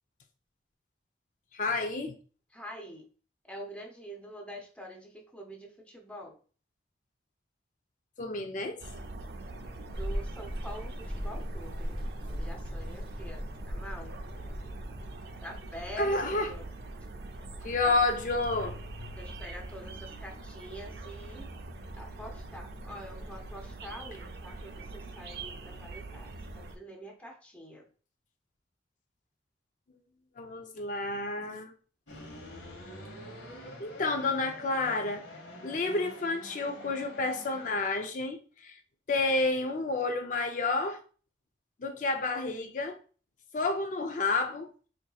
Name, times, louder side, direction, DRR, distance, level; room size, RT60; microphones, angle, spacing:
voice 1, 1.5-2.2 8.2-8.8 16.0-16.5 17.6-18.8 30.4-31.7 33.8-35.2 35.6-38.8 39.1-41.0 41.8-43.0 43.5-44.7, left 3 dB, 45° left, 0.4 m, -30 dB
voice 2, 2.5-3.1 3.5-6.4 10.0-12.0 12.3-14.1 15.4-16.7 17.8-17.9 19.2-21.5 22.0-27.8, equal, 5° left, 0.7 m, -45 dB
sound 1, 8.8-26.8, right 2 dB, 60° right, 0.5 m, -43 dB
sound 2, 9.9-15.2, equal, 30° right, 0.7 m, -38 dB
sound 3, 32.1-37.7, left 1 dB, 90° left, 1.2 m, -46 dB
4.4 x 2.8 x 2.3 m
head